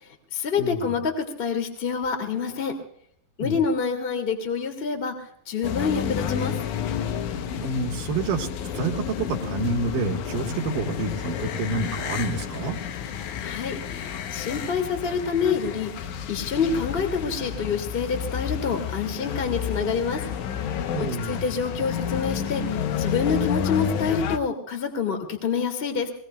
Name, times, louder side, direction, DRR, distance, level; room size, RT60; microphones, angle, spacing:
voice 1, 0.0-2.7 3.4-5.1 5.4-6.6 13.4-20.2 21.0-26.1, left 5 dB, 20° left, 4 dB, 1.6 m, -27 dB
voice 2, 0.6-0.9 3.4-3.6 7.6-12.8 20.9-21.4, right 3 dB, 65° right, 2 dB, 2.6 m, -28 dB
sound 1, 5.6-24.4, left 8 dB, 80° left, 1.8 m, -30 dB
25.0 x 20.0 x 2.2 m, 0.65 s
omnidirectional pair, 4.5 m